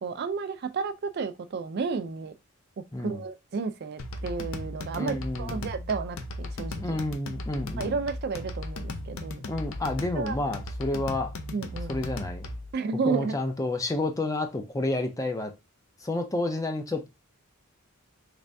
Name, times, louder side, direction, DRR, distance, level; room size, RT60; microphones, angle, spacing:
voice 1, 0.0-2.3 2.8-7.0 7.8-9.5 10.1-10.4 11.5-12.0 12.7-13.4, right 4 dB, 50° right, 0.4 m, -32 dB
sound 1, 4.0-12.7, left 2 dB, 70° left, 0.5 m, -36 dB
voice 2, 4.9-5.6 6.8-8.0 9.5-11.3 11.9-12.5 13.1-15.5 16.0-17.1, left 2 dB, 15° left, 0.5 m, -30 dB
3.3 x 3.3 x 2.6 m
head